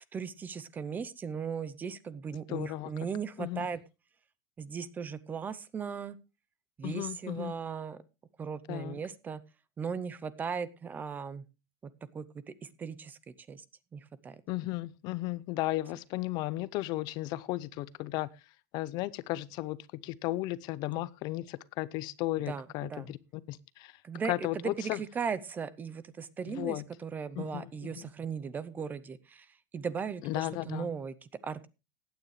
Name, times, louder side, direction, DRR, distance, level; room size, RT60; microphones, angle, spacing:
voice 1, 0.1-3.8 4.6-6.2 6.8-8.0 8.4-9.4 9.8-11.4 11.8-13.6 13.9-14.4 22.5-23.1 24.0-31.7, right 6 dB, 20° right, 0.6 m, -38 dB
voice 2, 2.5-2.9 3.4-3.7 6.8-7.5 8.7-9.0 14.5-18.3 18.7-19.8 20.0-23.2 23.5-24.0 24.3-25.0 26.5-26.8 27.4-28.1 30.2-30.9, left 17 dB, 45° left, 0.6 m, -35 dB
16.0 x 9.2 x 3.2 m
supercardioid pair, 155°, 10 cm